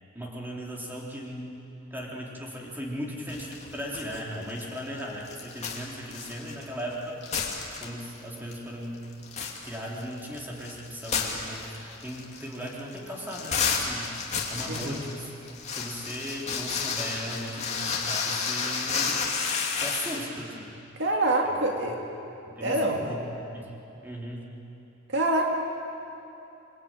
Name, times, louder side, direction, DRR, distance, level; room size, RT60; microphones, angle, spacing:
voice 1, 0.1-1.6 1.9-7.2 7.8-9.1 9.6-15.3 15.7-19.3 19.8-20.8 21.4-22.0 22.5-23.7 24.0-24.5, equal, 10° right, -3 dB, 3.8 m, -37 dB
sound 1, 3.3-4.2 4.5-6.9 7.2-8.2 8.5-8.6 9.0-20.3, left 5 dB, 30° left, 2.9 m, -31 dB
voice 2, 14.7-15.0 21.0-21.9 22.6-23.0 25.1-25.5, right 2 dB, 55° right, 1 dB, 2.2 m, -25 dB
28.0 x 22.0 x 9.1 m, 2.9 s
head